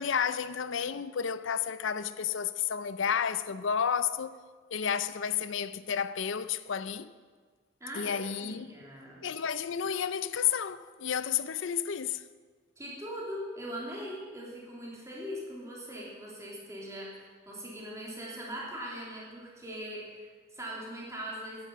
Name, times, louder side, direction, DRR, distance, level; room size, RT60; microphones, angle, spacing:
voice 1, 0.0-4.3 4.7-7.1 7.9-8.7 9.2-12.2, left 7 dB, 75° left, 0.5 m, -31 dB
voice 2, 7.8-9.2 12.8-21.7, equal, 15° right, 3.1 m, -41 dB
11.0 x 10.5 x 7.4 m
head